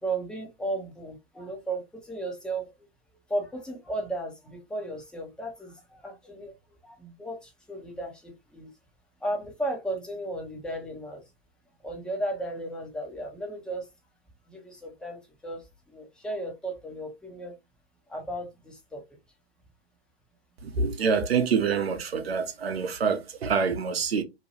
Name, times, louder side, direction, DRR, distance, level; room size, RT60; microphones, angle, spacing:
voice 1, 0.0-2.7 3.3-6.5 6.8-8.7 9.2-11.2 11.8-13.9 14.5-15.6 15.9-17.5 18.1-19.0, right 1 dB, 5° left, 0.6 m, -35 dB
voice 2, 20.6-24.2, right 5 dB, 70° right, 0.7 m, -26 dB
2.8 x 2.2 x 2.9 m
figure-of-eight pair, 105°, 31 cm